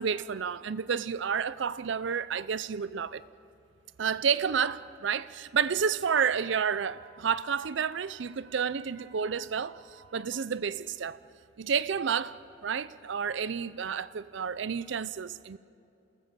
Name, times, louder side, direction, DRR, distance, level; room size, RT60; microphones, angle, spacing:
voice 1, 0.0-3.2 4.0-11.2 11.6-12.4 12.6-15.6, right 6 dB, 70° right, 0.5 m, -30 dB
28.5 x 18.0 x 7.5 m
head